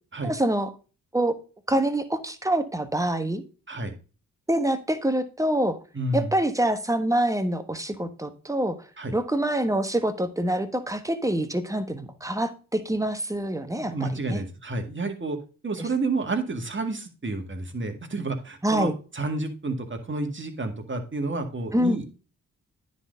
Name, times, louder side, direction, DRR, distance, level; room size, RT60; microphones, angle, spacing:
voice 1, 0.2-0.7 1.1-1.4 1.7-3.4 4.5-5.8 6.1-8.8 9.1-14.4 18.6-18.9 21.7-22.0, right 1 dB, 10° right, 9 dB, 1.3 m, -25 dB
voice 2, 5.9-6.3 9.0-9.2 13.8-15.4 15.6-22.1, right 2 dB, 30° right, 5 dB, 1.9 m, -30 dB
9.8 x 4.1 x 5.0 m, 0.35 s
supercardioid pair, 40°, 36 cm